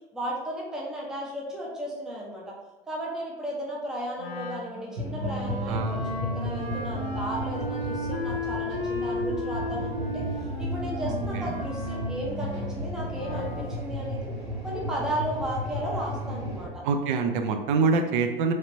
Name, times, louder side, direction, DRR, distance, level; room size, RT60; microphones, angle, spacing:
voice 1, 0.1-2.5 2.9-10.2 10.6-14.3 14.6-16.8, right 1 dB, ahead, -3 dB, 0.6 m, -34 dB
Wind instrument woodwind instrument, 4.2-13.6, left 1 dB, 85° left, 0.7 m, -35 dB
sound 1, 5.0-16.7, equal, 80° right, 1.2 m, -33 dB
voice 2, 5.7-6.0 11.0-11.6 16.8-18.5, right 4 dB, 55° right, 6 dB, 0.5 m, -26 dB
3.2 x 2.9 x 2.6 m, 1.2 s
hypercardioid pair, 90°, 30 cm